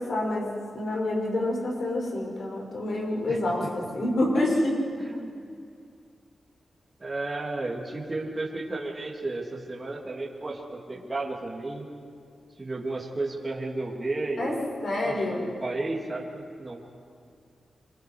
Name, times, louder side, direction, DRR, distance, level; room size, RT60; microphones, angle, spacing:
voice 1, 0.0-4.7 14.4-14.6 14.8-15.5, left 1 dB, 70° left, -2 dB, 6.1 m, -27 dB
voice 2, 5.0-5.5 7.0-11.9 12.6-14.7 15.0-17.0, right 2 dB, 30° right, -3 dB, 2.7 m, -33 dB
28.0 x 24.0 x 4.8 m, 2.3 s
wide cardioid pair, 90°, 0 cm